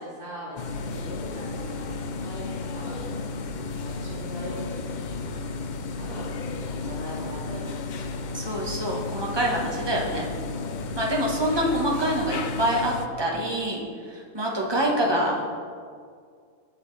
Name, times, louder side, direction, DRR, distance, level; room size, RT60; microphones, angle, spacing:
voice 1, 0.0-1.8 2.1-3.0 3.7-4.6 4.9-5.1 5.8-8.3 14.7-15.3, equal, 55° right, -13 dB, 2.9 m, -40 dB
sound 1, 0.6-13.1, left 4 dB, 65° left, 0.4 m, -33 dB
voice 2, 8.3-10.3 10.9-13.8 14.1-15.5, right 1 dB, 20° right, -2 dB, 1.2 m, -26 dB
12.0 x 6.5 x 3.3 m, 2.1 s
omnidirectional pair, 1.4 m